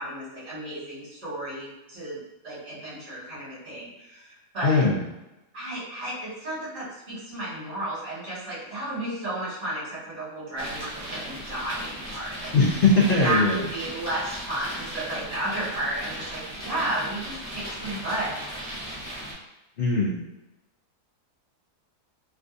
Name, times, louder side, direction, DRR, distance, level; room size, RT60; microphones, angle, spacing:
voice 1, 0.0-4.8 5.5-12.5 13.2-18.4, right 1 dB, 40° right, -10 dB, 1.8 m, -32 dB
voice 2, 4.6-5.0 12.5-13.7 19.8-20.2, left 3 dB, 65° left, -5 dB, 0.5 m, -20 dB
sound 1, 10.6-19.3, equal, 20° right, 0.5 m, -37 dB
3.4 x 2.5 x 2.5 m, 0.96 s
omnidirectional pair, 1.7 m